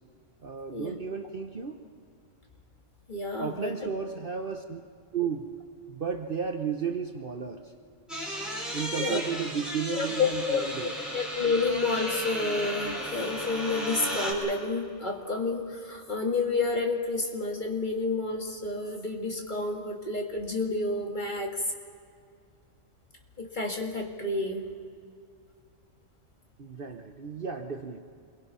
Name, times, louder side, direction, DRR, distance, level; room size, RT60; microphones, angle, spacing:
voice 1, 0.4-1.8 3.4-4.8 5.1-5.5 5.9-7.7 8.7-10.9 26.6-28.0, right 6 dB, 45° right, 5 dB, 1.0 m, -33 dB
voice 2, 3.1-3.7 9.0-9.2 9.9-21.5 23.4-24.7, left 3 dB, 35° left, 2 dB, 2.0 m, -30 dB
sound 1, 8.1-14.3, equal, ahead, 4.3 m, -34 dB
27.5 x 22.0 x 5.7 m, 2.2 s
omnidirectional pair, 1.4 m